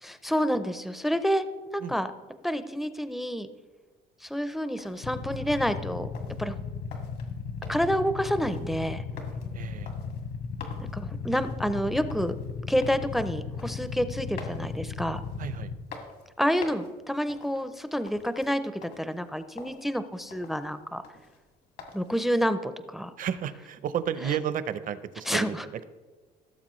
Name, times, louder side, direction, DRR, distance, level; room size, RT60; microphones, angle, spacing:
voice 1, 0.0-1.5 1.7-2.1 2.4-3.5 4.2-6.1 6.4-6.6 7.7-9.0 10.8-12.4 12.7-15.2 16.4-21.0 21.9-23.1 25.3-25.6, equal, ahead, 11 dB, 0.5 m, -28 dB
sound 1, 4.2-22.3, left 4 dB, 75° left, 2.0 m, -49 dB
Motorcycle / Idling, 5.0-15.8, left 5 dB, 60° left, 1.1 m, -36 dB
voice 2, 9.5-9.9 15.4-15.7 23.2-25.8, right 9 dB, 55° right, 13 dB, 0.7 m, -32 dB
17.0 x 7.3 x 3.1 m, 1.3 s
cardioid pair, 110°, 17 cm